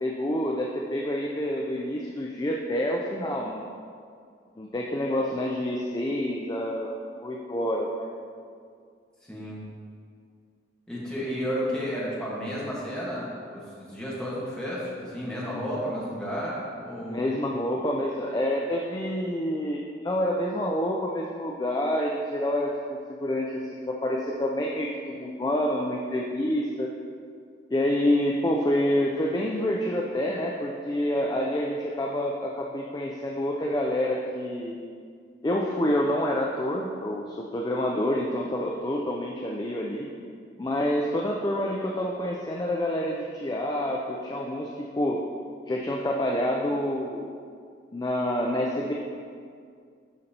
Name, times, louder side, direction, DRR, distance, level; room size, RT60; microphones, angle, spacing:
voice 1, 0.0-3.7 4.6-7.0 7.2-8.1 17.0-26.9 27.7-34.7 35.4-40.1 40.6-45.2 45.7-47.3 47.9-48.9, left 1 dB, 20° left, -1 dB, 0.4 m, -28 dB
voice 2, 9.3-9.6 10.9-17.2, equal, 5° left, -7 dB, 1.4 m, -32 dB
11.5 x 4.1 x 2.8 m, 2.2 s
head